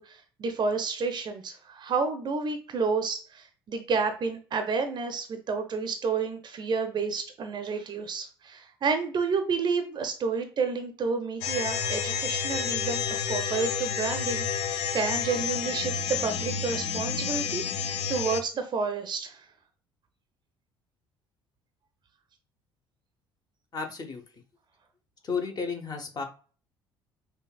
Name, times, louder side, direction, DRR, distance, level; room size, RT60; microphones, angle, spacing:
voice 1, 0.0-17.6 18.1-19.4, right 4 dB, 35° right, 7 dB, 0.6 m, -30 dB
sound 1, 11.4-18.4, left 7 dB, 50° left, 0.5 m, -30 dB
voice 2, 23.7-24.4 25.2-26.2, left 5 dB, 30° left, 4 dB, 0.9 m, -33 dB
5.5 x 2.3 x 2.2 m, 0.38 s
figure-of-eight pair, 55°, 13 cm